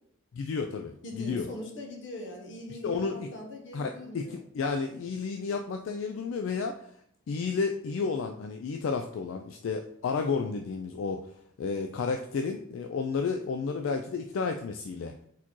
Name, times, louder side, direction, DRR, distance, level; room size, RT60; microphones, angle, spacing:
voice 1, 0.3-1.5 2.8-3.3 3.7-6.9 7.3-11.2 11.6-15.1, left 5 dB, 85° left, 5 dB, 0.3 m, -32 dB
voice 2, 1.0-4.4, left 1 dB, 65° left, 1 dB, 1.0 m, -41 dB
4.2 x 4.2 x 3.0 m, 0.67 s
head